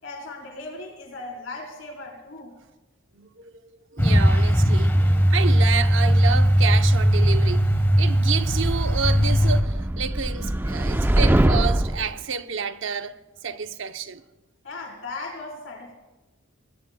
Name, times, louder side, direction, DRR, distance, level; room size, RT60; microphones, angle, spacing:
voice 1, 0.0-2.5 14.6-15.9, left 2 dB, 70° left, 4.0 m, -37 dB
voice 2, 3.2-3.5 3.9-13.2 13.4-14.2, right 6 dB, 65° right, 0.7 m, -30 dB
Truck, 4.0-9.6, equal, 10° left, 1.1 m, -19 dB
sound 1, 8.5-12.1, right 1 dB, 10° right, 0.4 m, -23 dB
24.5 x 20.5 x 2.2 m
head